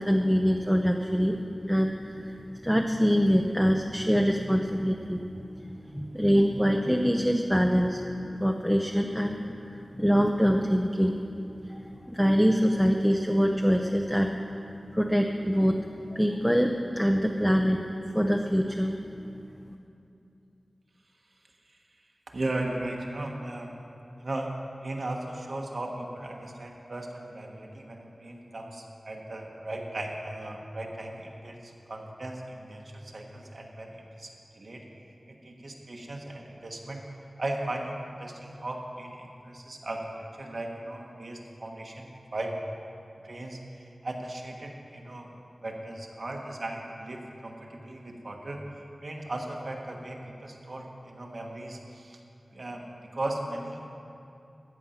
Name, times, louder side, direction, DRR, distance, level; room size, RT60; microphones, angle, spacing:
voice 1, 0.0-1.4 1.6-5.2 5.6-8.0 8.3-11.2 11.7-14.3 14.9-15.8 16.1-17.8 18.0-19.0, equal, ahead, 2 dB, 0.6 m, -24 dB
voice 2, 22.3-23.8 24.2-24.5 24.8-34.8 35.3-37.0 37.4-40.0 40.4-42.5 43.2-48.6 49.0-52.2 52.5-52.8 53.1-53.9, right 1 dB, 60° right, 0 dB, 1.3 m, -37 dB
14.5 x 7.6 x 5.8 m, 2.7 s
wide cardioid pair, 85°, 0 cm